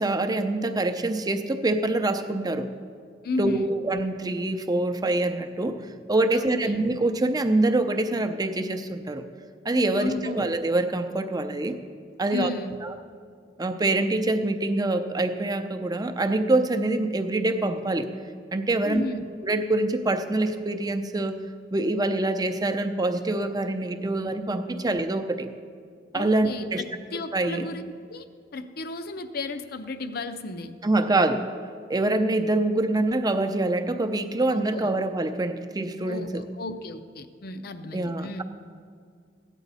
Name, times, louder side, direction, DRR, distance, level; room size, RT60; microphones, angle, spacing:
voice 1, 0.0-2.7 3.4-5.8 6.1-9.2 9.6-11.8 12.2-12.5 12.8-13.0 13.6-18.1 18.5-19.0 19.4-21.3 21.7-25.5 26.1-26.8 27.3-27.6 30.8-31.5 31.9-36.4 37.9-38.4, right 2 dB, 20° right, 7 dB, 0.6 m, -25 dB
voice 2, 3.2-3.7 6.3-6.9 9.9-10.5 12.3-12.8 18.8-19.3 26.1-28.3 28.5-30.7 34.5-34.9 36.0-38.4, left 3 dB, 60° left, 10 dB, 0.6 m, -34 dB
15.0 x 9.0 x 4.1 m, 2.1 s
head